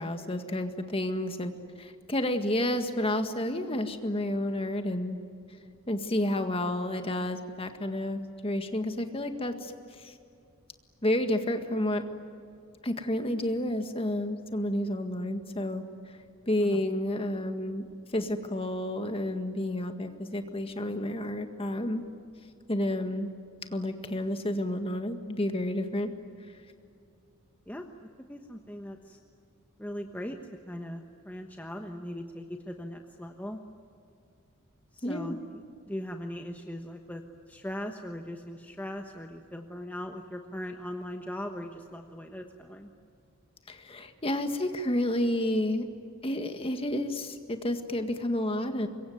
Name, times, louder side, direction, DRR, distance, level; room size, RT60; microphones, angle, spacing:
voice 1, 0.0-1.5 1.8-5.2 5.9-10.1 11.0-12.0 12.8-16.2 16.5-17.8 18.1-22.0 22.7-23.3 23.7-26.1 35.0-35.4 43.7-45.9 46.2-48.9, left 1 dB, 25° left, 7 dB, 1.8 m, -30 dB
voice 2, 27.7-29.2 29.8-30.4 30.7-33.6 34.9-35.4 35.9-37.2 37.5-42.9, left 1 dB, 10° left, 3 dB, 1.1 m, -39 dB
25.5 x 23.0 x 9.5 m, 2.5 s
head